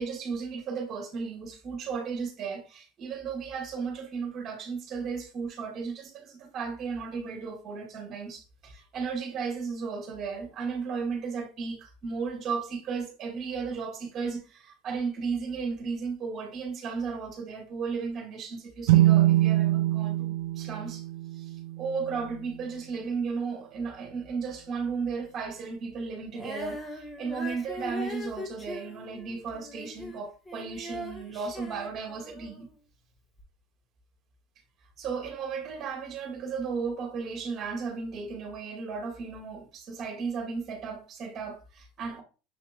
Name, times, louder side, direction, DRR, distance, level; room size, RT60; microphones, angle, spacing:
voice 1, 0.0-21.0 21.3-32.7 35.0-42.2, right 5 dB, 45° right, 1.4 m, -35 dB
sound 1, 18.9-22.4, right 15 dB, 75° right, 0.4 m, -24 dB
Female singing, 26.3-32.7 33.4-33.5, left 1 dB, 15° left, 1.1 m, -40 dB
6.8 x 2.9 x 2.3 m
hypercardioid pair, 90°, 0 cm